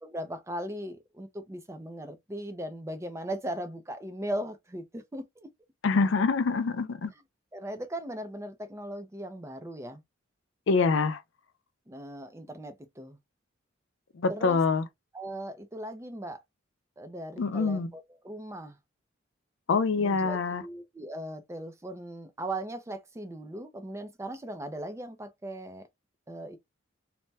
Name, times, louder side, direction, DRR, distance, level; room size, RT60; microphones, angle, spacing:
voice 1, 0.0-5.5 7.5-10.0 11.9-13.2 14.3-14.6 15.1-16.4 17.0-18.8 20.0-25.9 26.3-26.6, right 1 dB, 15° right, 0.4 m, -38 dB
voice 2, 5.8-7.1 10.7-11.2 14.2-14.9 17.4-17.9 19.7-20.6, left 4 dB, 70° left, 0.4 m, -25 dB
3.3 x 2.1 x 2.6 m
head